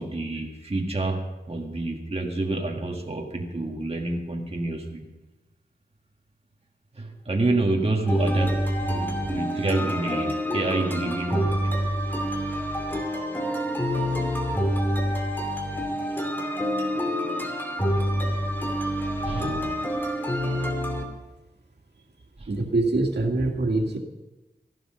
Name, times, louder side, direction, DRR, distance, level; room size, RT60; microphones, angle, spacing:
voice 1, 0.0-5.0 7.0-11.6 15.9-16.1 19.2-19.9 22.4-22.5, right 2 dB, 35° right, 0 dB, 1.7 m, -28 dB
sound 1, 8.1-21.0, equal, 10° left, 2.5 m, -27 dB
voice 2, 22.5-24.0, right 2 dB, 85° right, 2 dB, 2.0 m, -24 dB
15.0 x 11.5 x 5.6 m, 1.1 s
wide cardioid pair, 70°, 17 cm